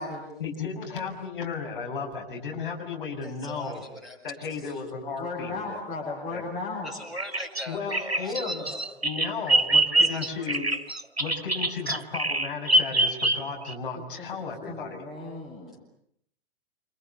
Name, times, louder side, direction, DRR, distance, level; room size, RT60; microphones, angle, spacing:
voice 1, 0.4-3.8 4.2-5.8 6.3-6.4 7.7-8.6 9.0-10.7 11.2-15.0, left 5 dB, 55° left, 3 dB, 6.9 m, -34 dB
voice 2, 3.2-4.2 4.6-4.7 6.8-8.8 9.6-9.7 10.0-10.5, left 1 dB, ahead, -2 dB, 6.4 m, -41 dB
voice 3, 5.2-6.9 13.9-15.7, left 3 dB, 20° left, -3 dB, 8.0 m, -36 dB
Bird vocalization bird call bird song, 7.2-13.7, right 2 dB, 85° right, 1.6 m, -25 dB
28.5 x 28.5 x 6.8 m, 0.70 s
figure-of-eight pair, 115°, 31 cm